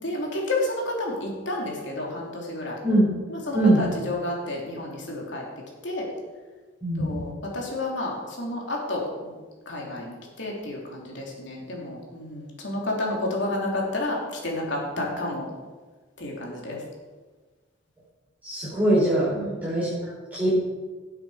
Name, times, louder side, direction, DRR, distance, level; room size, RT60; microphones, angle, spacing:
voice 1, 0.0-2.8 3.3-5.4 5.8-6.1 7.0-9.4 9.6-15.5 16.2-16.8 19.3-19.7, left 2 dB, 65° left, -2 dB, 3.4 m, -30 dB
voice 2, 6.8-7.1 18.4-19.3 19.6-19.9 20.3-20.5, right 1 dB, 10° right, -11 dB, 4.8 m, -21 dB
17.0 x 8.3 x 5.1 m, 1.4 s
head